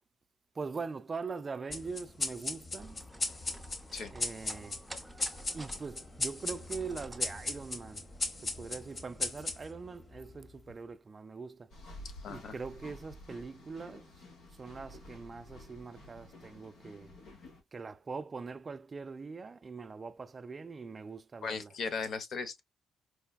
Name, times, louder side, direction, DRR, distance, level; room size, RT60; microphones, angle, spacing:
voice 1, 0.5-3.0 4.1-4.9 5.5-8.1 8.4-11.8 12.3-14.3 14.5-17.2 17.7-21.8, right 4 dB, 35° right, 0.3 m, -42 dB
sound 1, 1.7-10.6, left 2 dB, 35° left, 0.8 m, -38 dB
sound 2, 2.8-8.6, right 1 dB, 5° right, 0.7 m, -51 dB
sound 3, 11.7-17.6, left 1 dB, 80° left, 1.2 m, -51 dB
voice 2, 12.2-12.5 21.4-22.6, left 5 dB, 60° left, 0.8 m, -37 dB
4.6 x 2.2 x 2.3 m
cardioid pair, 90°, 0 cm